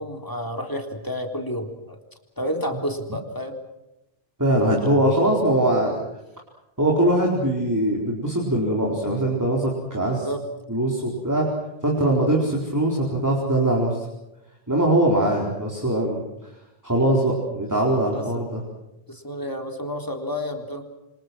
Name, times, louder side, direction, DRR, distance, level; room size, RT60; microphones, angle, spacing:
voice 1, 0.0-2.0 2.4-3.6 4.8-5.1 10.0-10.4 15.1-15.3 18.1-18.5 19.1-20.8, equal, 20° left, 3 dB, 3.7 m, -31 dB
voice 2, 4.4-6.0 6.8-10.3 10.7-11.5 11.8-14.0 14.7-16.2 16.8-18.6, right 1 dB, 15° right, -2 dB, 4.5 m, -21 dB
28.5 x 25.5 x 6.2 m, 0.91 s
omnidirectional pair, 1.0 m